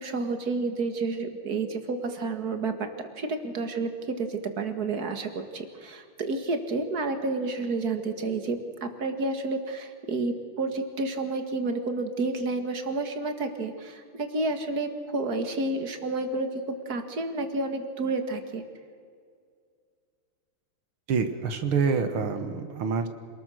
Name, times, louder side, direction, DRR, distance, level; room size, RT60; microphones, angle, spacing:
voice 1, 0.0-18.6, right 3 dB, 45° right, 7 dB, 2.3 m, -30 dB
voice 2, 21.1-23.1, right 5 dB, 75° right, 8 dB, 2.2 m, -26 dB
27.0 x 20.0 x 6.5 m, 2.2 s
omnidirectional pair, 2.4 m